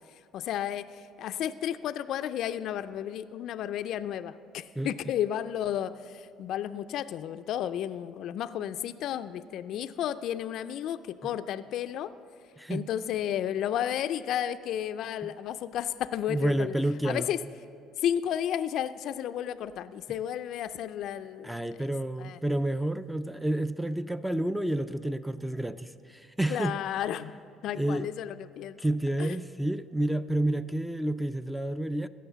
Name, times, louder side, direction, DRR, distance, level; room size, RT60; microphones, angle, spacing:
voice 1, 0.3-12.1 12.7-16.7 17.0-17.4 18.0-21.9 22.2-22.4 26.5-27.4 27.6-28.8 29.2-29.4, left 10 dB, 65° left, 11 dB, 0.3 m, -32 dB
voice 2, 12.6-12.9 15.2-15.3 16.3-17.3 21.4-26.8 27.7-28.1 28.8-32.1, right 1 dB, 5° right, 13 dB, 0.4 m, -30 dB
16.0 x 6.2 x 6.8 m, 2.2 s
cardioid pair, 95°, 0 cm